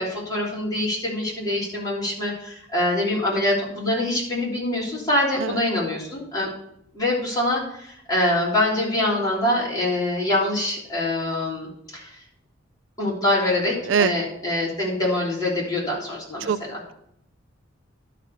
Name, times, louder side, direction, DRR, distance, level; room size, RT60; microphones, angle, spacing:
voice 1, 0.0-6.5 6.9-12.0 13.0-16.8, left 1 dB, 20° left, -6 dB, 3.3 m, -24 dB
voice 2, 5.4-5.6 13.9-14.1 16.5-16.6, right 7 dB, 70° right, 13 dB, 0.4 m, -21 dB
11.5 x 5.1 x 5.3 m, 0.72 s
head